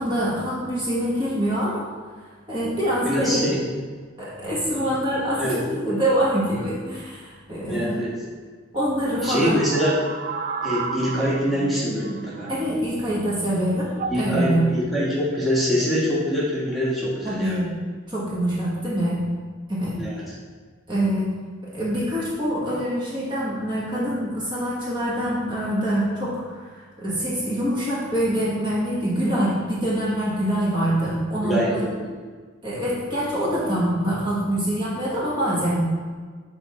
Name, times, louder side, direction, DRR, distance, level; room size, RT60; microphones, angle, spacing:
voice 1, 0.0-1.8 2.5-3.6 4.2-8.0 8.7-9.6 12.5-13.9 14.1-14.7 17.2-17.7 18.1-19.2 19.7-20.0 20.9-21.3 21.6-26.4 26.7-31.8 32.6-35.8, equal, 25° right, -7 dB, 1.2 m, -25 dB
voice 2, 3.0-3.6 4.7-4.9 5.4-5.6 7.6-8.1 9.2-9.9 10.6-12.5 14.1-17.5 20.0-20.2 31.4-32.0, equal, ahead, -9 dB, 1.3 m, -24 dB
sound 1, 9.2-13.0 13.9-14.3 15.2-15.6, right 4 dB, 40° right, 0.3 m, -32 dB
6.9 x 3.5 x 4.2 m, 1.5 s
head